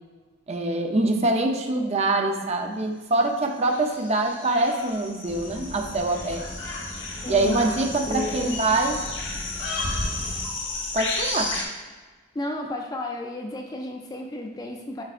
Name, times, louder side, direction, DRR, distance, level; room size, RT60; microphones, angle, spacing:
voice 1, 0.5-6.4 7.3-9.0 10.9-11.5, right 2 dB, 30° right, 3 dB, 0.6 m, -24 dB
sound 1, 3.6-11.6, left 3 dB, 60° left, 1.2 m, -33 dB
sound 2, 5.3-10.5, equal, 90° left, 1.1 m, -37 dB
voice 2, 7.2-7.6 8.1-8.5 12.3-15.0, left 1 dB, 20° left, 2 dB, 0.4 m, -32 dB
8.5 x 4.6 x 2.5 m, 1.3 s
head